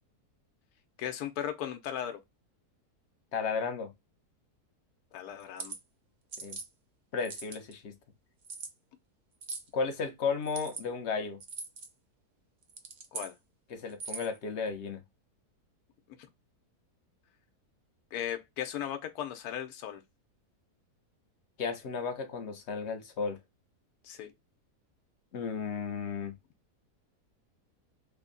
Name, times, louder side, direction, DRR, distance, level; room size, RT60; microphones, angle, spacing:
voice 1, 1.0-2.2 5.1-5.7 13.1-13.3 18.1-20.0 24.0-24.3, left 10 dB, 75° left, 1.2 m, -37 dB
voice 2, 3.3-3.9 6.4-6.6 7.1-7.9 9.7-11.4 13.7-15.0 21.6-23.4 25.3-26.3, left 5 dB, 55° left, 0.8 m, -34 dB
sound 1, 5.4-5.8 6.3-6.7 7.2-7.7 8.4-8.7 9.4-9.7 10.4-10.8 11.4-11.9 12.6-13.3 13.9-14.4, right 4 dB, 55° right, 0.5 m, -41 dB
3.5 x 2.1 x 3.7 m
omnidirectional pair, 1.7 m